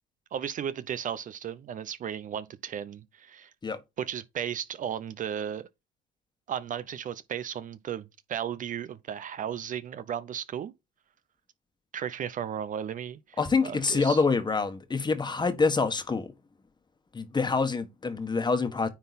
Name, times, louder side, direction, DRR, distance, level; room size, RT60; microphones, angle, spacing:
voice 1, 0.3-3.5 4.0-5.7 6.5-10.7 11.9-13.4 13.6-14.2, right 9 dB, 45° right, 0.5 m, -35 dB
voice 2, 13.4-16.3 17.1-18.9, left 4 dB, 25° left, 1.3 m, -26 dB
9.5 x 3.8 x 4.1 m
cardioid pair, 95°, 18 cm